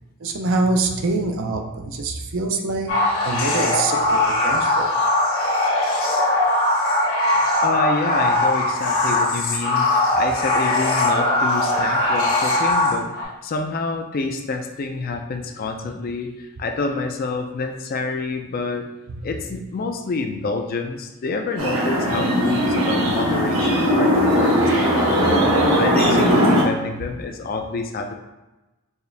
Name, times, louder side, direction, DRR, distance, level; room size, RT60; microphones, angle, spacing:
voice 1, 0.2-2.9 3.2-4.9 19.1-19.2, right 3 dB, 65° right, 3 dB, 0.5 m, -24 dB
sound 1, 2.9-13.2, left 2 dB, 70° left, 1.2 m, -20 dB
voice 2, 7.6-18.9 19.2-28.1, left 3 dB, 45° left, 5 dB, 0.4 m, -28 dB
sound 2, 21.6-26.6, equal, 80° right, 1.1 m, -18 dB
4.4 x 2.4 x 3.3 m, 1.0 s
head